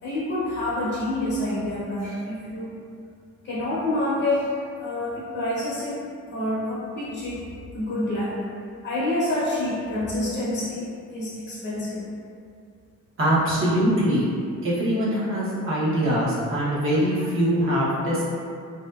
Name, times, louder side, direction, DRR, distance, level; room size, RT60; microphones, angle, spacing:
voice 1, 0.0-2.7 3.4-4.5 4.8-7.4 7.7-8.4 8.8-12.1, left 1 dB, 40° left, -8 dB, 0.6 m, -27 dB
voice 2, 13.2-14.3 14.6-18.2, equal, 45° right, -8 dB, 0.9 m, -23 dB
2.7 x 2.2 x 2.2 m, 2.3 s
cardioid pair, 90°, 30 cm